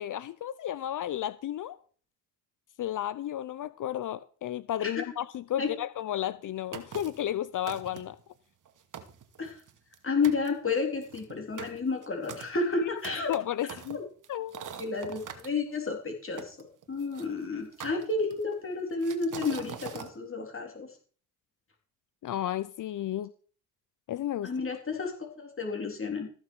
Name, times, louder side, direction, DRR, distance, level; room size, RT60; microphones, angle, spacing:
voice 1, 0.0-1.8 2.8-8.2 12.8-12.9 13.3-14.0 14.3-14.7 22.2-23.3 24.1-24.5, left 12 dB, 50° left, 0.8 m, -33 dB
sound 1, 6.7-7.3 7.7-8.2 8.6-8.7 8.9-10.0 10.2-10.5 11.0-15.5 16.4-17.3 17.8-18.5 19.0-20.1, right 8 dB, 45° right, 2.2 m, -43 dB
voice 2, 10.0-13.3 13.9-14.0 14.8-16.6 16.9-20.9 24.4-26.3, left 4 dB, 30° left, 3.6 m, -31 dB
14.5 x 6.1 x 6.3 m
supercardioid pair, 75°, 42 cm